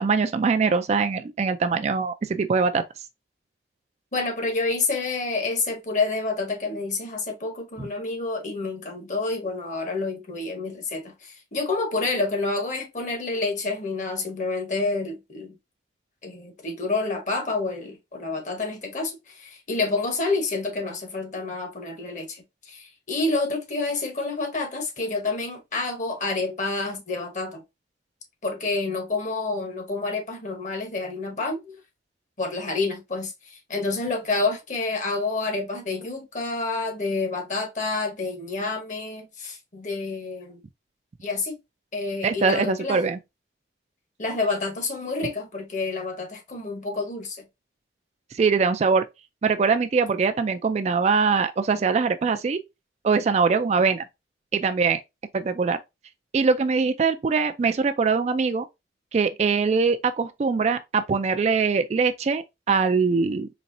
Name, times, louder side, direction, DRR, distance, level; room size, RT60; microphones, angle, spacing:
voice 1, 0.0-2.8 7.8-7.9 42.2-43.2 48.4-49.1 49.4-52.6 53.0-54.1 54.5-55.0 55.3-55.8 56.3-58.7 59.1-63.5, right 5 dB, 40° right, 0.3 m, -22 dB
voice 2, 4.1-15.5 16.2-27.6 28.4-31.8 32.4-40.6 41.2-41.6 41.9-43.0 44.2-47.5, left 3 dB, 45° left, 1.1 m, -28 dB
4.1 x 3.1 x 2.6 m
head